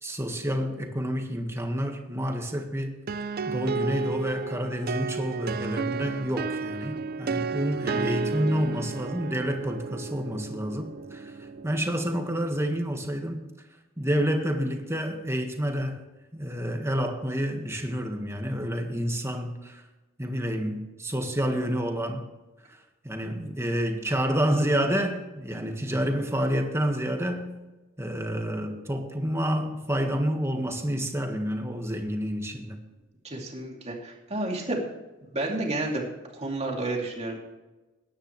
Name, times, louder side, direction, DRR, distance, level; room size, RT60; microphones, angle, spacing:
voice 1, 0.0-3.0 3.5-13.4 14.0-16.0 16.3-19.8 20.2-22.3 22.7-27.6 28.0-32.8, equal, 15° right, 4 dB, 1.6 m, -29 dB
sound 1, 3.1-12.7, right 4 dB, 50° right, 0.5 m, -33 dB
voice 2, 7.9-8.2 33.2-34.8 35.2-37.4, right 2 dB, 35° right, -1 dB, 2.8 m, -31 dB
20.0 x 10.0 x 3.3 m, 1.1 s
head